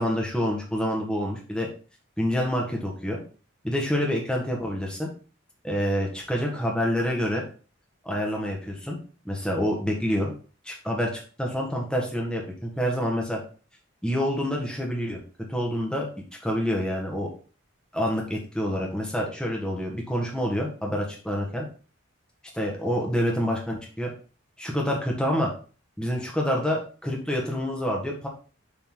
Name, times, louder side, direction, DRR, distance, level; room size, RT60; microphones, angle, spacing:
voice 1, 0.0-1.7 2.2-3.2 3.6-5.1 5.6-7.4 8.0-9.0 9.2-10.3 10.6-13.4 14.0-15.2 15.5-16.1 16.4-17.3 17.9-21.6 22.5-24.1 24.6-25.5 26.0-28.3, equal, 5° left, -1 dB, 1.6 m, -27 dB
7.4 x 4.3 x 3.9 m, 0.38 s
head